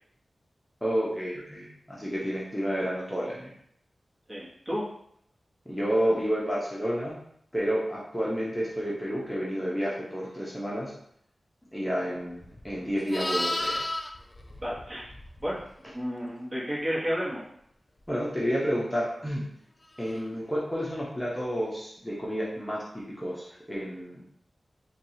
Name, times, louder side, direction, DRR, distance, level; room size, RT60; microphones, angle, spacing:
voice 1, 0.8-3.5 5.7-7.2 7.5-10.9 11.7-13.8 18.1-19.4 20.0-24.2, equal, 5° left, -6 dB, 0.8 m, -30 dB
voice 2, 4.3-4.8 14.6-15.0 15.4-15.6 15.9-17.4, equal, 30° right, -7 dB, 1.2 m, -31 dB
Livestock farm animals working animals, 12.4-15.7 20.0-20.2, left 1 dB, 25° left, 0.4 m, -33 dB
4.6 x 2.3 x 2.7 m, 0.70 s
wide cardioid pair, 100°, 0 cm